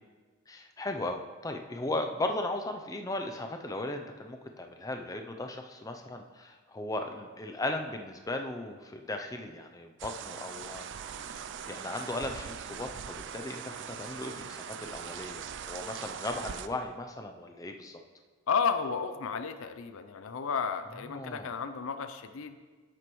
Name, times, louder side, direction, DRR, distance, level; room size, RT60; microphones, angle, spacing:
voice 1, 0.5-13.6 13.9-18.0 21.1-21.6, left 2 dB, 15° left, 4 dB, 0.4 m, -37 dB
sound 1, 10.0-16.7, right 7 dB, 55° right, 0.4 m, -41 dB
voice 2, 18.5-22.6, left 6 dB, 70° left, 9 dB, 0.5 m, -32 dB
11.0 x 7.7 x 3.1 m, 1.4 s
head